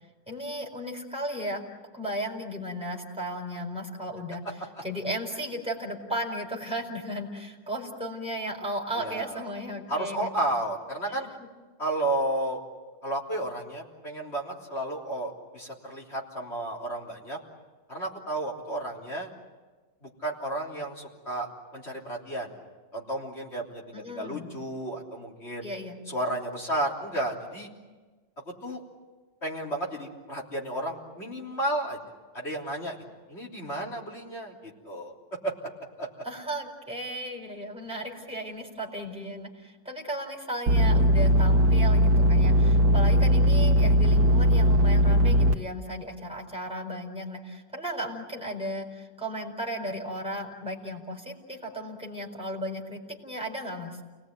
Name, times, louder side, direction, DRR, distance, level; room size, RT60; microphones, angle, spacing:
voice 1, 0.3-1.6 1.9-4.4 4.8-10.3 23.9-24.5 25.6-25.9 36.2-54.0, equal, 5° right, -1 dB, 4.5 m, -35 dB
voice 2, 9.0-9.4 9.9-11.3 11.8-12.6 13.0-17.4 17.9-19.3 20.0-22.5 22.9-25.7 26.1-27.7 28.5-28.8 29.4-32.0 32.3-33.0 33.3-35.1 35.4-35.5 36.0-36.1, right 1 dB, 35° left, -2 dB, 3.7 m, -32 dB
sound 1, 40.7-45.5, equal, 70° right, 1.7 m, -20 dB
29.0 x 19.5 x 9.3 m, 1.3 s
omnidirectional pair, 2.0 m